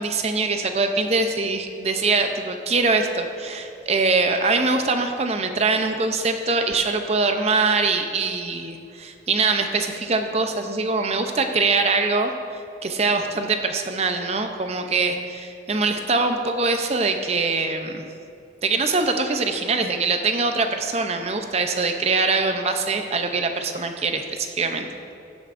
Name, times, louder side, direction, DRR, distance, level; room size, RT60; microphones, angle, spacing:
voice 1, 0.0-12.3 12.8-18.1 18.6-24.9, right 3 dB, 35° right, 6 dB, 0.6 m, -23 dB
14.5 x 8.9 x 2.6 m, 2.5 s
head